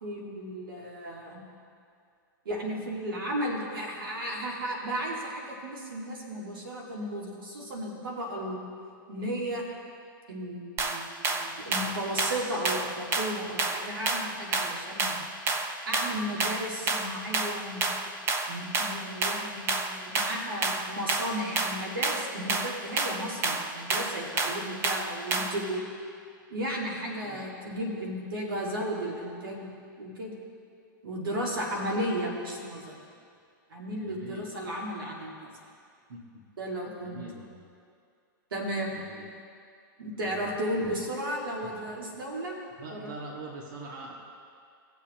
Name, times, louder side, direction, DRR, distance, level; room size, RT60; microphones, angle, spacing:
voice 1, 0.0-1.4 2.5-8.6 9.1-9.7 10.3-15.2 15.9-17.9 18.5-25.8 26.5-29.7 30.0-30.3 31.0-33.0 33.7-35.5 36.6-37.2 38.5-38.9 40.0-42.6 42.9-43.1, equal, 90° right, -2 dB, 2.3 m, -34 dB
sound 1, 10.8-25.7, right 3 dB, 20° right, 0.7 m, -30 dB
voice 2, 27.1-27.5 31.5-32.0 34.0-34.4 36.1-36.2 37.0-37.5 38.9-39.3 40.2-40.9 42.8-44.1, right 2 dB, 65° right, -2 dB, 1.9 m, -44 dB
19.5 x 7.2 x 3.1 m, 2.3 s
hypercardioid pair, 140°, 11 cm